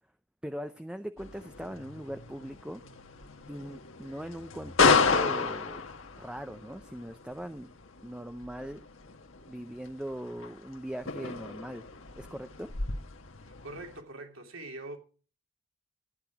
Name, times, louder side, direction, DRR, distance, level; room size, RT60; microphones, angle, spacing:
voice 1, 0.4-2.8 3.5-5.8 6.2-7.7 8.0-8.8 9.5-11.9 12.2-12.7, equal, 5° right, 0.5 m, -40 dB
sound 1, 1.2-14.0, left 4 dB, 65° left, 1.5 m, -32 dB
voice 2, 13.4-15.0, right 2 dB, 70° right, 2.9 m, -43 dB
15.0 x 10.5 x 4.8 m
head